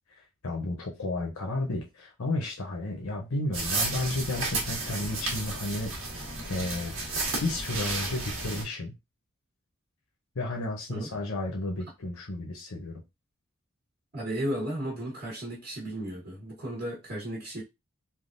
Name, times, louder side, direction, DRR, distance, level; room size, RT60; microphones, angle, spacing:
voice 1, 0.4-6.9 7.4-8.9 10.4-13.0, left 2 dB, 85° left, 0.7 m, -32 dB
sound 1, 3.5-8.6, right 3 dB, 75° right, 1.3 m, -32 dB
voice 2, 14.1-17.6, right 1 dB, 50° right, 1.2 m, -34 dB
3.4 x 2.3 x 2.5 m
head